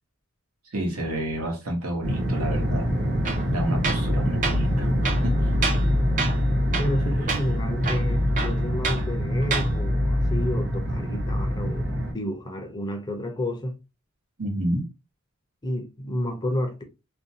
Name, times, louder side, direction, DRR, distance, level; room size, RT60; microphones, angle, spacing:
voice 1, 0.7-2.9 3.5-4.9 5.2-5.5 7.3-7.4 14.4-14.8, right 1 dB, 80° right, 1.0 m, -29 dB
sound 1, 2.0-12.1, equal, 55° right, 1.1 m, -24 dB
Tools, 3.2-3.5 3.8-4.1 4.4-4.6 5.0-5.9 6.2-6.4 6.7-7.0 7.3-7.4 7.8-9.0 9.4-9.7, right 4 dB, 35° right, 0.4 m, -28 dB
voice 2, 6.8-13.7 15.6-16.8, left 1 dB, 20° left, 0.5 m, -30 dB
2.5 x 2.2 x 2.7 m
head